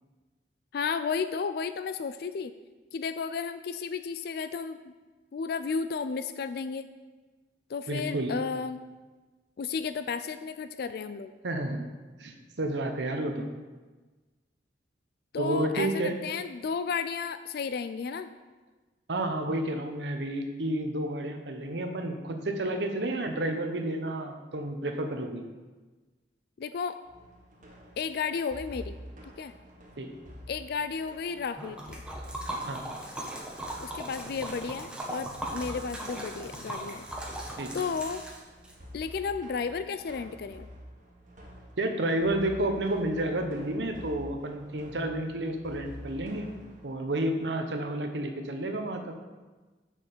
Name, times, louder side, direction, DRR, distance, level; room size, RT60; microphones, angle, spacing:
voice 1, 0.7-2.5 2.9-4.9 5.3-6.9 7.7-8.8 9.6-11.3 15.3-18.3 26.6-27.0 28.0-29.0 29.4-29.5 30.5-32.0 33.8-37.1 37.7-38.2 38.9-40.7, left 5 dB, 60° left, 10 dB, 0.4 m, -33 dB
voice 2, 7.9-8.3 11.4-11.9 12.2-13.5 15.4-16.1 19.1-25.4 30.0-30.1 32.7-32.9 37.6-37.8 41.8-46.5 46.8-49.1, right 1 dB, 75° right, 5 dB, 1.0 m, -30 dB
sound 1, 27.0-46.9, equal, 45° right, 1.6 m, -48 dB
Liquid, 31.6-38.7, right 1 dB, 5° right, 1.1 m, -38 dB
6.4 x 5.9 x 6.8 m, 1.3 s
head